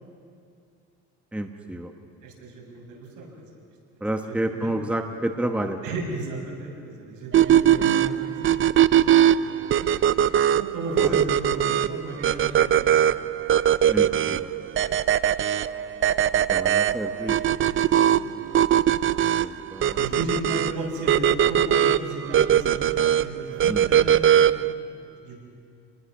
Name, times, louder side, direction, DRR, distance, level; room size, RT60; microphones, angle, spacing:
voice 1, 1.3-1.9 4.0-5.8 11.0-11.2 13.9-14.5 16.3-17.4 19.4-20.0 23.7-23.9, right 1 dB, 5° right, 4 dB, 1.3 m, -30 dB
voice 2, 2.2-3.3 4.1-4.7 5.8-10.0 10.3-13.1 17.6-18.3 20.0-25.4, right 2 dB, 75° right, -1 dB, 7.0 m, -35 dB
sound 1, 7.3-24.7, right 10 dB, 40° right, 0.6 m, -21 dB
29.5 x 20.5 x 6.2 m, 2.4 s
cardioid pair, 105°, 31 cm